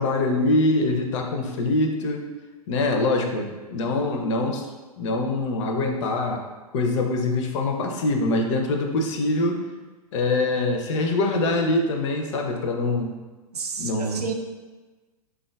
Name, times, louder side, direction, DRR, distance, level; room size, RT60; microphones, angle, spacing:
voice 1, 0.0-2.3 2.7-4.7 5.0-6.4 6.7-9.6 10.1-13.2 13.8-14.3, left 2 dB, 50° left, 3 dB, 0.4 m, -24 dB
voice 2, 13.5-14.3, right 5 dB, 80° right, 4 dB, 0.4 m, -31 dB
3.6 x 2.2 x 2.3 m, 1.3 s
figure-of-eight pair, 105°, 20 cm